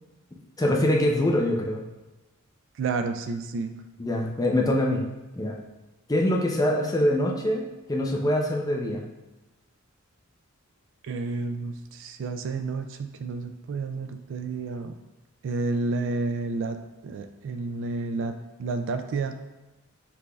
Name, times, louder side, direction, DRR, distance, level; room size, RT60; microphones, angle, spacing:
voice 1, 0.6-1.8 4.0-5.0 5.4-5.5 6.1-9.0, left 1 dB, 15° left, -1 dB, 0.5 m, -24 dB
voice 2, 2.8-3.7 11.0-15.0 15.4-18.3 18.6-19.3, right 3 dB, 60° right, 8 dB, 0.3 m, -30 dB
5.9 x 3.4 x 2.3 m, 1.1 s
head